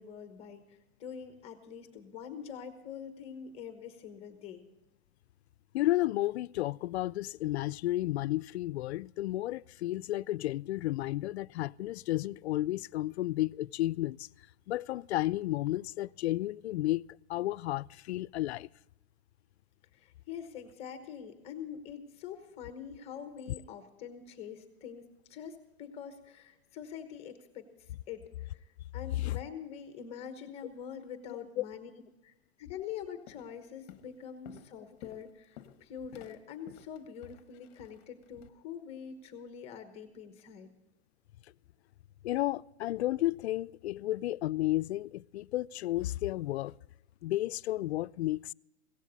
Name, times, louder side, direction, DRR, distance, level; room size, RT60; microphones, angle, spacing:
voice 1, 0.0-4.6 19.9-31.9 32.2-40.7, left 8 dB, 20° left, 1.1 m, -45 dB
voice 2, 5.7-14.3 14.7-17.0 17.3-18.7 29.2-29.4 31.6-31.7 42.2-46.7 47.2-48.5, left 16 dB, 85° left, 0.5 m, -32 dB
Walk footsteps, 32.7-32.9 33.3-33.6 33.9-38.5, left 11 dB, 40° left, 1.0 m, -54 dB
17.0 x 14.5 x 4.0 m
supercardioid pair, 170°, 32 cm